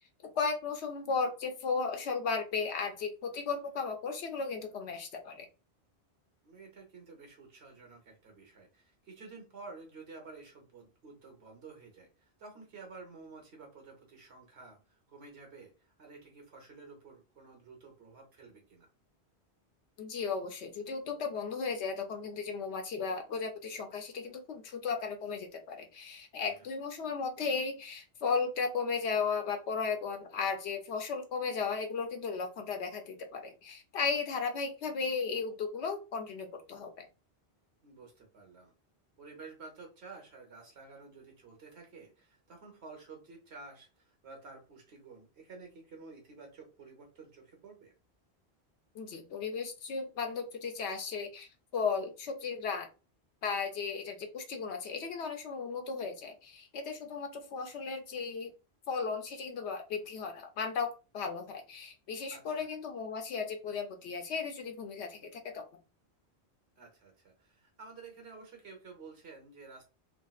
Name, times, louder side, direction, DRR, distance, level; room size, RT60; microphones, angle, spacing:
voice 1, 0.4-5.5 20.0-37.1 48.9-52.9 53.4-58.5 58.9-65.6, left 5 dB, 80° left, 5 dB, 0.9 m, -35 dB
voice 2, 6.4-18.9 26.5-26.7 37.8-38.7 39.2-47.9 62.3-62.7 66.8-69.9, right 4 dB, 75° right, 2 dB, 1.3 m, -51 dB
3.5 x 2.0 x 2.3 m, 0.31 s
omnidirectional pair, 1.1 m